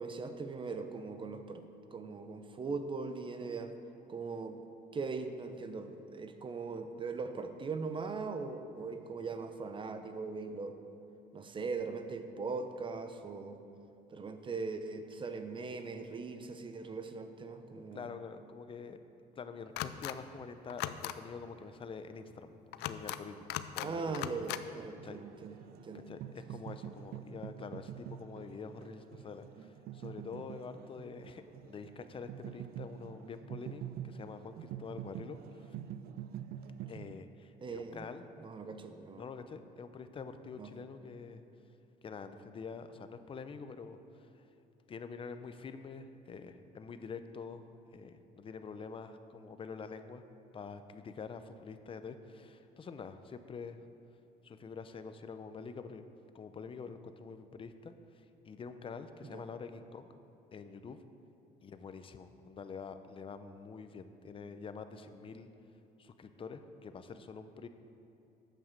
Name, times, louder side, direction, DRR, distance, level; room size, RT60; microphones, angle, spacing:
voice 1, 0.0-1.7 1.9-3.7 4.1-4.6 4.9-10.8 11.3-13.6 14.1-18.1 23.8-26.1 37.6-38.1 38.4-39.2 40.6-40.7 59.2-59.4, right 4 dB, 30° right, 8 dB, 0.8 m, -40 dB
voice 2, 17.9-19.0 19.3-24.2 25.0-25.3 26.1-35.7 36.9-38.2 39.2-41.4 42.0-44.4 44.9-47.6 47.9-50.2 50.5-53.8 54.4-56.0 56.3-60.1 60.5-61.0 61.6-65.5 66.0-67.7, left 5 dB, 30° left, 9 dB, 0.6 m, -46 dB
sound 1, 19.8-20.1 20.7-21.1 22.7-23.2 23.5-23.9 24.1-24.6, left 14 dB, 90° left, 0.4 m, -38 dB
sound 2, 24.8-37.1, right 10 dB, 65° right, 0.4 m, -46 dB
9.0 x 7.2 x 6.6 m, 2.9 s
cardioid pair, 110°, 17 cm